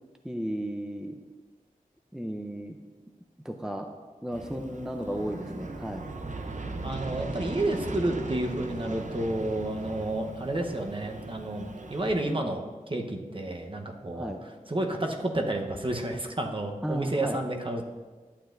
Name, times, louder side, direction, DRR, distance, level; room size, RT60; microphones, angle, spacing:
voice 1, 0.2-1.2 2.1-2.8 3.4-3.9 4.2-6.1 14.2-14.4 16.8-17.4, equal, 5° right, 4 dB, 0.6 m, -34 dB
Aircraft, 4.3-12.3, right 3 dB, 60° right, 0.7 m, -39 dB
voice 2, 6.8-14.3 14.7-17.8, right 1 dB, 35° right, 2 dB, 1.0 m, -30 dB
11.5 x 7.8 x 2.6 m, 1.4 s
cardioid pair, 45°, 14 cm